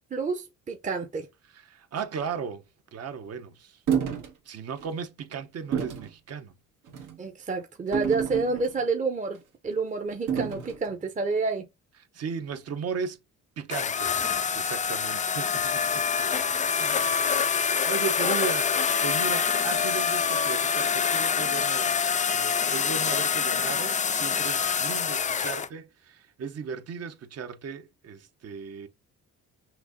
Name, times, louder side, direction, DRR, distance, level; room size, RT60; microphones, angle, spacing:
voice 1, 0.1-1.3 7.2-11.7, right 4 dB, 25° right, 0.7 m, -29 dB
voice 2, 1.5-2.6 2.9-3.8 4.5-6.5 12.1-13.2 13.6-14.1 14.5-16.4 16.8-17.4 17.9-18.7 19.0-28.9, right 6 dB, 55° right, 0.8 m, -36 dB
sound 1, 3.9-4.3 4.8-4.9 5.7-6.1 6.9-7.2 7.9-8.8 10.3-10.8, right 8 dB, 85° right, 1.5 m, -29 dB
sound 2, 13.7-25.7, left 6 dB, 25° left, 0.4 m, -26 dB
5.9 x 2.7 x 2.6 m
cardioid pair, 90°, 30 cm